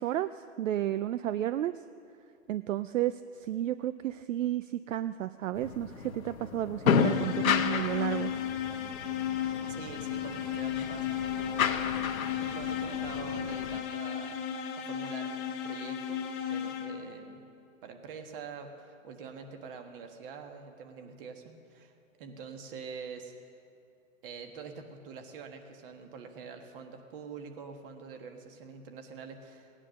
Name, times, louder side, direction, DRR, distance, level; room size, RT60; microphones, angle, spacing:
voice 1, 0.0-1.8 2.5-8.3, right 13 dB, 70° right, 14 dB, 0.5 m, -32 dB
sound 1, 5.6-13.8, left 7 dB, 80° left, 1.1 m, -33 dB
sound 2, 6.9-17.2, left 10 dB, 30° left, 1.2 m, -34 dB
voice 2, 9.7-12.1 12.4-14.4 14.7-15.3 15.6-17.4 17.8-21.9 22.2-23.3 24.2-29.7, right 5 dB, 40° right, 5 dB, 1.5 m, -45 dB
17.5 x 9.9 x 6.4 m, 2.5 s
hypercardioid pair, 140°, 41 cm